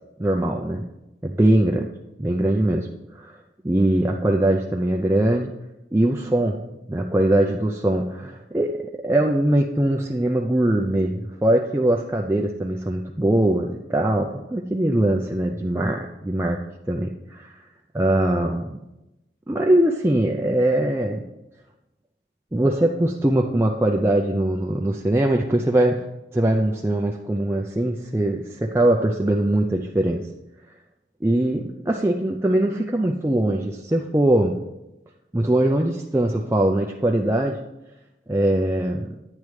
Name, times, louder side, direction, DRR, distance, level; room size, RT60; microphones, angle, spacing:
voice 1, 0.2-0.8 1.2-1.9 2.2-3.4 3.6-5.5 5.9-16.6 16.9-17.6 17.9-18.8 19.5-21.3 22.5-26.0 26.3-30.2 31.2-34.6 35.3-37.6 38.3-39.2, right 1 dB, 15° right, 1 dB, 0.4 m, -21 dB
10.5 x 9.5 x 3.2 m, 0.96 s
head